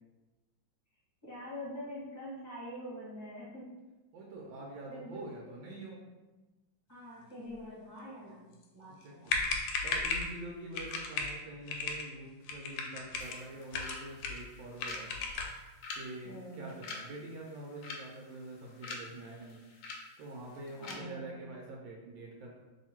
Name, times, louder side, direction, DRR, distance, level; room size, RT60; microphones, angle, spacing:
voice 1, 1.2-3.7 4.9-5.2 6.9-9.3 16.2-16.7 20.8-21.4, equal, 10° right, -8 dB, 1.0 m, -45 dB
voice 2, 4.1-6.0 8.9-9.4 9.8-15.1 15.9-19.6 20.2-22.5, right 1 dB, 80° right, -2 dB, 1.4 m, -45 dB
sound 1, 9.0-9.1 9.3-10.3 10.7-11.3 11.7-12.1 12.4-13.4 13.7-14.5 14.8-15.6, left 4 dB, 85° left, 1.4 m, -35 dB
sound 2, 13.2-20.9, left 3 dB, 65° left, 0.9 m, -48 dB
3.0 x 2.8 x 4.3 m, 1.1 s
omnidirectional pair, 2.1 m